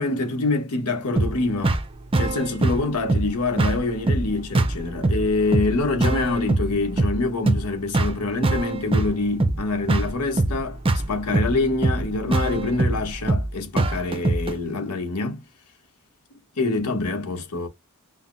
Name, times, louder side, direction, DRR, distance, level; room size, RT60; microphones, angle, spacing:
voice 1, 0.0-1.8 2.2-15.4 16.6-17.7, left 3 dB, 90° left, 1.0 m, -25 dB
sound 1, 1.2-14.6, right 2 dB, 25° right, 0.5 m, -24 dB
5.6 x 2.0 x 2.4 m
head